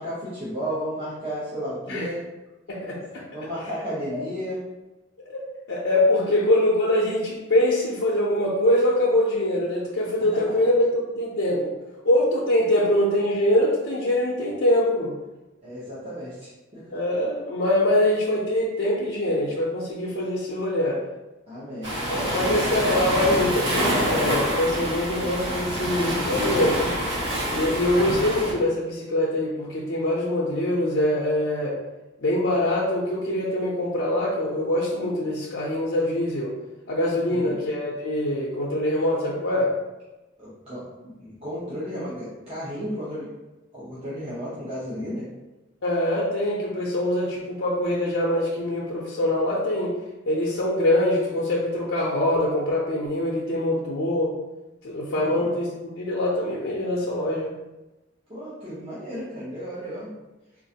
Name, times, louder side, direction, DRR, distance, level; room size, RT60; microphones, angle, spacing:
voice 1, 0.0-2.2 3.3-4.6 10.3-10.6 15.6-17.0 21.5-21.9 22.2-22.6 37.2-37.5 40.4-43.3 43.7-45.3 55.1-55.4 58.3-60.1, equal, 30° right, -11 dB, 0.9 m, -33 dB
voice 2, 2.7-3.2 4.1-4.2 5.2-11.7 12.0-15.1 16.9-21.0 22.1-26.8 27.5-31.8 32.2-36.5 36.9-39.7 45.8-49.9 50.3-54.3 54.8-55.7 56.0-57.5, left 1 dB, 80° left, -5 dB, 0.6 m, -23 dB
Waves surf, 21.8-28.5, equal, 85° right, 1.4 m, -26 dB
3.7 x 2.5 x 2.8 m, 1.1 s
head